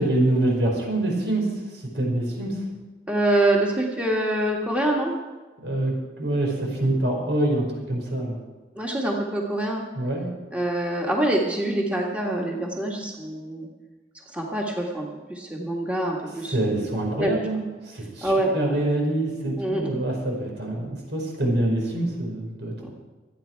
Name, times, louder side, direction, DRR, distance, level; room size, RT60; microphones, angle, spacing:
voice 1, 0.0-1.5 1.9-2.6 5.6-8.4 9.9-10.3 16.5-22.7, right 1 dB, 80° right, 0 dB, 5.2 m, -25 dB
voice 2, 3.1-5.1 8.7-9.8 10.5-13.7 14.3-16.8 17.1-17.4 18.2-18.5 19.6-20.0 22.8-22.9, right 1 dB, 5° right, -2 dB, 1.8 m, -25 dB
25.5 x 9.4 x 4.7 m, 1.2 s
head